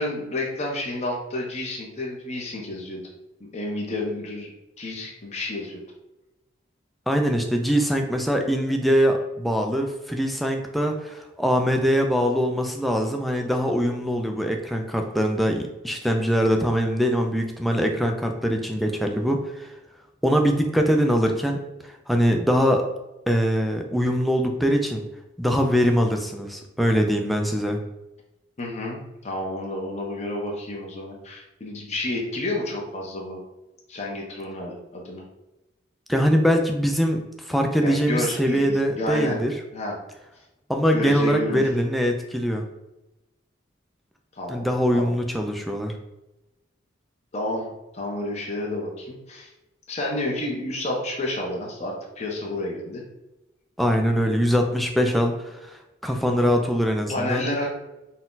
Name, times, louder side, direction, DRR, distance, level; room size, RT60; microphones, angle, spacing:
voice 1, 0.0-3.0 3.4-4.5 4.8-5.8 28.6-33.4 33.9-35.2 37.8-39.4 39.7-40.0 40.9-41.7 44.4-44.7 44.9-45.1 47.3-47.7 47.9-49.5 49.9-53.0 57.1-57.7, left 1 dB, 35° left, -2 dB, 0.9 m, -30 dB
voice 2, 7.1-19.7 20.2-22.9 23.3-25.1 25.4-27.8 36.1-39.5 40.7-42.6 44.5-45.9 53.8-57.5, equal, ahead, 3 dB, 0.4 m, -23 dB
4.2 x 2.3 x 3.9 m, 0.98 s
head